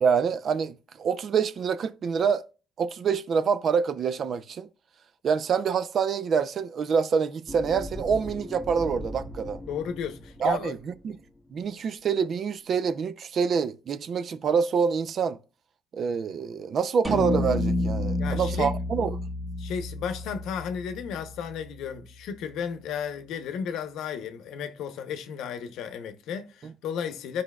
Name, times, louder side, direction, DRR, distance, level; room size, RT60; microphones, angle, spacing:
voice 1, 0.0-2.4 2.8-4.7 5.2-9.6 10.4-11.2 11.5-15.4 15.9-19.2 26.6-26.7, right 6 dB, 60° right, 0.5 m, -26 dB
sound 1, 7.5-11.7, left 1 dB, 5° left, 1.2 m, -40 dB
voice 2, 9.7-10.7 18.2-18.7 19.6-27.4, left 7 dB, 85° left, 0.7 m, -34 dB
sound 2, 17.0-21.5, left 1 dB, 20° right, 1.7 m, -29 dB
13.0 x 4.9 x 2.3 m
cardioid pair, 90°, 0 cm